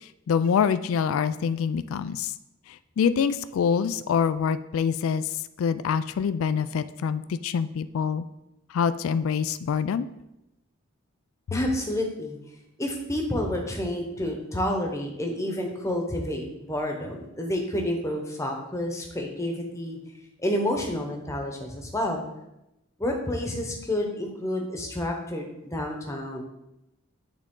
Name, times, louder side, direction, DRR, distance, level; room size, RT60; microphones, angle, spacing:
voice 1, 0.0-2.3 3.0-5.3 5.6-8.2 8.7-10.1, left 6 dB, 80° left, 13 dB, 0.3 m, -25 dB
voice 2, 11.5-12.4 12.8-20.0 20.4-22.2 23.0-26.4, left 1 dB, 15° left, 1 dB, 0.9 m, -29 dB
8.8 x 3.6 x 3.7 m, 0.88 s
head